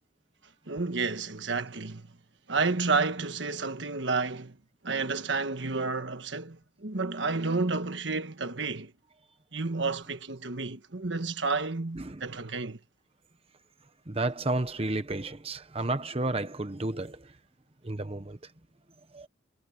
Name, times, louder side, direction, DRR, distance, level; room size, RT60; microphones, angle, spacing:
voice 1, 0.7-2.1 2.5-4.6 4.8-8.9 9.5-12.8, right 4 dB, 70° right, 1.5 m, -30 dB
voice 2, 14.1-17.2 17.8-18.4 19.1-19.3, right 2 dB, 30° right, 1.0 m, -31 dB
head